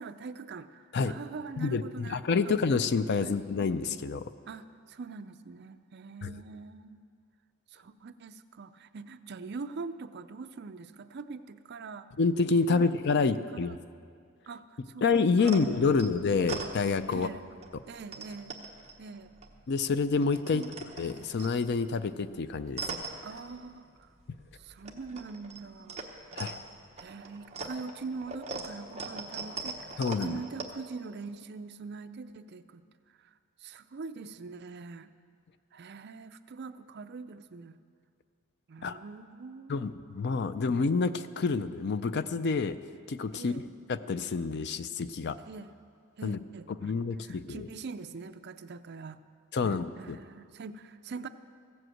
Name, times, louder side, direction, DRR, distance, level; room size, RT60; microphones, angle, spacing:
voice 1, 0.0-2.5 3.2-3.4 4.5-7.1 7.7-12.1 12.6-13.8 14.5-15.1 15.4-16.2 17.1-17.4 17.9-18.6 19.0-19.3 20.5-20.7 23.2-24.1 24.5-26.1 27.0-32.8 33.2-33.3 33.6-35.1 35.7-37.8 38.7-39.8 43.3-43.7 45.5-45.8 46.2-46.9 47.2-49.2 49.6-51.3, right 4 dB, 50° right, 11 dB, 0.4 m, -43 dB
voice 2, 1.6-4.3 6.2-6.3 12.2-13.8 15.0-17.3 19.7-20.6 21.0-22.8 26.4-26.6 30.0-30.4 38.8-39.0 39.7-42.8 43.1-43.5 43.9-45.4 46.2-46.4 46.8-47.7 49.5-50.2, left 4 dB, 50° left, 13 dB, 0.4 m, -28 dB
sound 1, 15.4-17.3 17.6-19.8 20.1-24.1 24.3-30.6, right 3 dB, 30° right, 1.0 m, -41 dB
15.5 x 7.8 x 7.7 m, 2.2 s
head